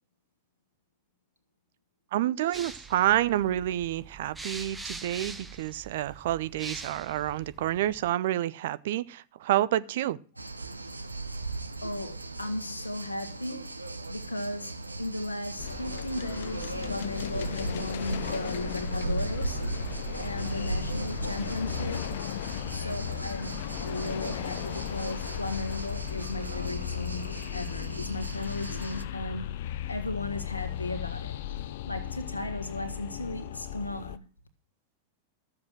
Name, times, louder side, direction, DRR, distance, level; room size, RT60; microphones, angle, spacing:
voice 1, 2.1-10.2, right 13 dB, 55° right, 0.5 m, -28 dB
sound 1, 2.5-8.1, right 3 dB, 10° right, 1.1 m, -43 dB
sound 2, 10.4-29.0, right 3 dB, 80° right, 0.8 m, -37 dB
voice 2, 11.8-13.7 14.1-19.6 20.2-22.1 22.7-27.2 27.5-29.5 29.9-31.4 31.9-34.2, left 2 dB, 80° left, 1.6 m, -36 dB
sound 3, 15.6-34.2, left 11 dB, 55° left, 0.6 m, -36 dB
13.5 x 7.3 x 6.1 m
figure-of-eight pair, 90°, 0 cm